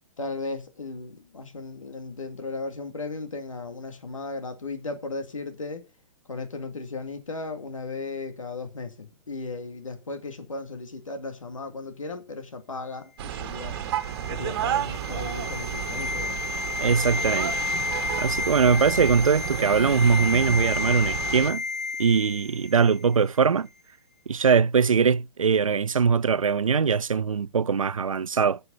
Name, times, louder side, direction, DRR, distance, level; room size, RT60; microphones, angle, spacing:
voice 1, 0.2-5.9 6.3-13.8 14.3-16.4, left 3 dB, 80° left, 2.2 m, -36 dB
sound 1, 13.2-21.5, right 10 dB, 45° right, 1.7 m, -32 dB
sound 2, 13.5-22.8 23.0-23.2, left 4 dB, 5° left, 2.4 m, -31 dB
voice 2, 16.8-17.6 18.2-21.6 22.0-23.7 24.3-28.6, right 6 dB, 85° right, 0.5 m, -22 dB
9.6 x 6.8 x 8.2 m
figure-of-eight pair, 125°, 17 cm